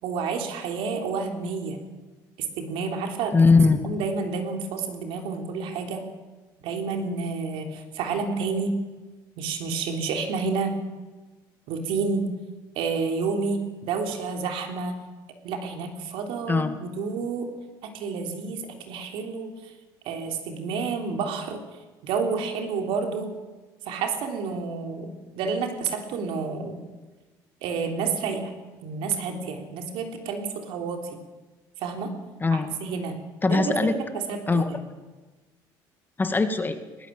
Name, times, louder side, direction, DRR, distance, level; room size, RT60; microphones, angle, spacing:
voice 1, 0.0-1.8 2.6-3.4 3.9-6.0 6.6-8.8 9.4-10.8 11.7-12.3 12.8-15.0 15.4-17.5 17.8-19.7 20.1-21.6 22.0-23.3 23.9-26.8 27.6-28.5 28.8-31.1 31.8-32.1 32.5-33.2 33.5-34.8, right 4 dB, 75° right, 4 dB, 3.6 m, -29 dB
voice 2, 3.3-3.8 16.5-16.8 32.4-32.7 33.4-34.0 34.5-34.7 36.2-36.8, left 4 dB, 20° left, 8 dB, 2.1 m, -20 dB
20.0 x 19.5 x 7.7 m, 1.3 s
supercardioid pair, 95°, 9 cm